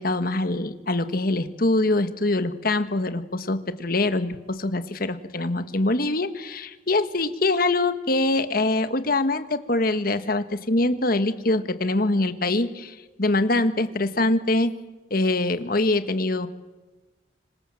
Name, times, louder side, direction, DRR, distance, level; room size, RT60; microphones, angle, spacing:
voice 1, 0.0-14.7 15.1-16.5, left 2 dB, 50° left, 10 dB, 1.5 m, -24 dB
26.0 x 26.0 x 7.6 m, 1.2 s
head